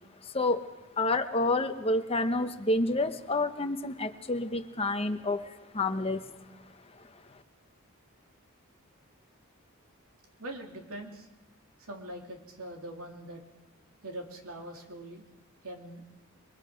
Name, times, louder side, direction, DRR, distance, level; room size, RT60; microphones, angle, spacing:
voice 1, 1.0-5.5 5.7-6.2, left 2 dB, 25° left, 8 dB, 0.9 m, -28 dB
voice 2, 10.4-11.3 11.9-13.4 14.0-15.3 15.6-16.0, right 1 dB, 75° right, 2 dB, 3.2 m, -42 dB
27.0 x 22.5 x 5.1 m, 1.0 s
head